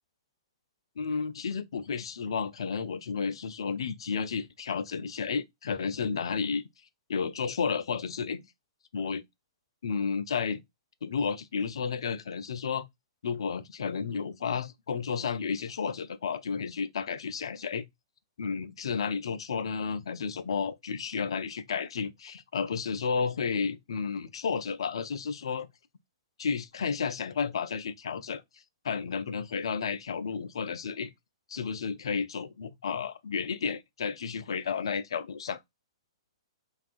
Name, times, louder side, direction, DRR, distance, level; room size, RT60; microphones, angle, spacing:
voice 1, 1.0-6.6 7.1-8.4 8.9-9.2 9.8-10.6 11.0-12.8 13.2-17.8 18.4-25.7 26.4-31.1 31.5-35.6, left 5 dB, 70° left, 0.4 m, -32 dB
3.3 x 2.3 x 2.3 m
hypercardioid pair, 120°, 3 cm